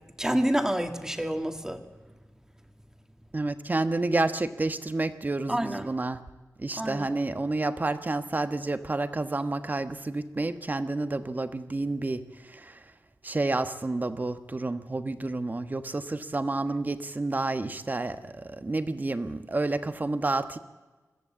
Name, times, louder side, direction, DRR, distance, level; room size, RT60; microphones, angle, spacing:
voice 1, 0.2-1.8 5.5-5.9 6.8-7.1, right 1 dB, 10° right, 6 dB, 1.9 m, -28 dB
voice 2, 3.3-6.2 6.6-12.2 12.5-12.8 13.2-20.6, right 2 dB, 30° right, 10 dB, 1.2 m, -29 dB
22.0 x 14.5 x 8.5 m, 1.3 s
wide cardioid pair, 85°, 6 cm